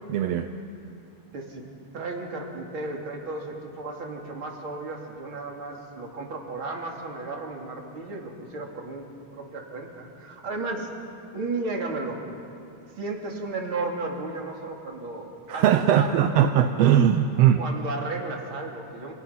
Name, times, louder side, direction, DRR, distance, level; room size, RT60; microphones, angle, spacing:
voice 1, 0.1-0.5 15.5-17.6, right 10 dB, 70° right, 7 dB, 1.7 m, -20 dB
voice 2, 1.9-9.1 9.3-10.9 11.3-12.3 13.0-15.6 15.9-16.4 17.4-19.1, right 3 dB, 40° right, 0 dB, 3.5 m, -34 dB
28.5 x 28.0 x 5.9 m, 2.6 s
omnidirectional pair, 3.6 m